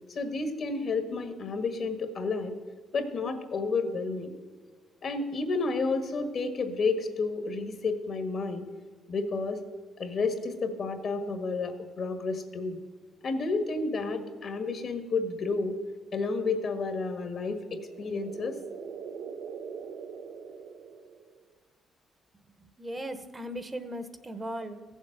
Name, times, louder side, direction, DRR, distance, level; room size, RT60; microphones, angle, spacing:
voice 1, 0.1-2.5 2.9-4.3 5.0-8.7 9.1-9.6 10.0-12.8 13.2-15.8 16.1-18.6, left 3 dB, 55° left, 7 dB, 1.6 m, -31 dB
sound 1, 17.3-21.5, right 6 dB, 80° right, 0.8 m, -43 dB
voice 2, 22.8-24.8, equal, 20° right, 10 dB, 1.0 m, -37 dB
15.0 x 7.3 x 6.6 m, 1.5 s
cardioid pair, 90°, 0 cm